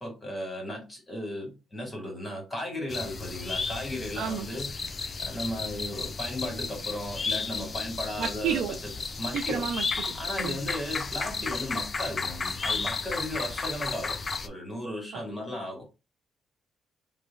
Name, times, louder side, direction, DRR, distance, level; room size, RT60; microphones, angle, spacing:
voice 1, 0.0-4.7 5.2-8.8 9.2-9.7 10.1-15.8, left 1 dB, 15° left, 1.8 m, -36 dB
sound 1, 2.9-14.5, left 4 dB, 35° left, 0.4 m, -33 dB
voice 2, 4.2-4.5 8.2-8.8 9.3-10.6, right 8 dB, 80° right, 0.4 m, -31 dB
2.9 x 2.2 x 3.3 m
cardioid pair, 90°, 0 cm